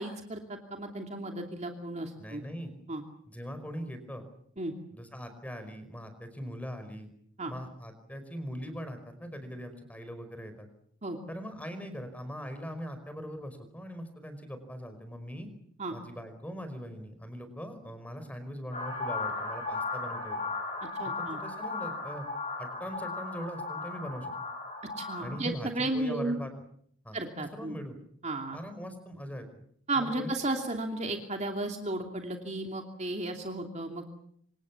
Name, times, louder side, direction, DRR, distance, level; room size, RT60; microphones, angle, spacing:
voice 1, 0.0-2.4 2.9-3.0 4.6-4.7 7.4-7.5 11.0-11.2 15.8-15.9 20.8-21.4 25.0-26.4 27.1-27.7 28.2-28.6 29.9-34.1, right 2 dB, 30° right, 3 dB, 2.8 m, -34 dB
voice 2, 2.2-2.7 3.3-4.3 4.9-7.1 7.5-10.7 11.3-15.5 15.9-20.5 21.1-22.3 22.6-24.3 25.2-26.5 27.0-27.2 27.5-28.0 28.5-29.5 30.0-30.3, equal, 5° left, 9 dB, 5.1 m, -41 dB
sound 1, 18.7-25.4, left 3 dB, 30° left, 6.2 m, -36 dB
27.5 x 26.5 x 7.2 m, 0.67 s
head